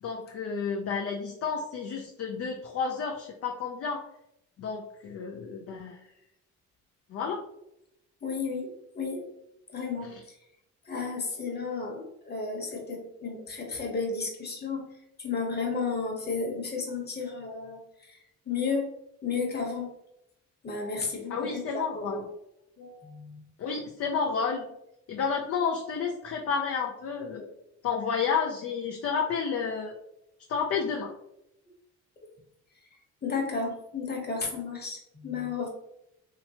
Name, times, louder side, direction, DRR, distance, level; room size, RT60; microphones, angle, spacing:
voice 1, 0.0-4.0 4.6-6.0 7.1-7.4 21.3-22.2 23.6-24.7 25.1-27.5 27.8-29.9 30.5-31.1, left 6 dB, 50° left, 1 dB, 0.5 m, -31 dB
voice 2, 8.2-9.3 9.7-10.4 10.8-14.9 15.2-18.9 19.2-19.9 20.6-22.2 22.8-23.4 33.2-35.7, left 4 dB, 35° left, 0 dB, 1.1 m, -33 dB
3.1 x 2.9 x 2.8 m, 0.81 s
cardioid pair, 90°, 30 cm